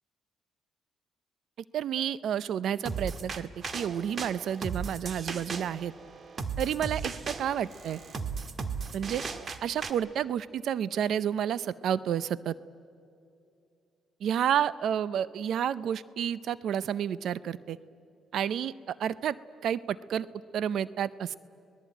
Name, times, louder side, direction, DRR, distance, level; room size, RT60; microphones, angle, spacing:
voice 1, 1.7-5.9 6.6-8.0 8.9-9.2 9.6-12.5 14.2-17.8 18.3-19.4 19.6-20.3 20.5-21.4, right 9 dB, 70° right, 18 dB, 0.5 m, -30 dB
sound 1, 2.9-9.9, right 5 dB, 45° right, 1.6 m, -36 dB
26.0 x 19.5 x 9.2 m, 2.5 s
cardioid pair, 90°, 0 cm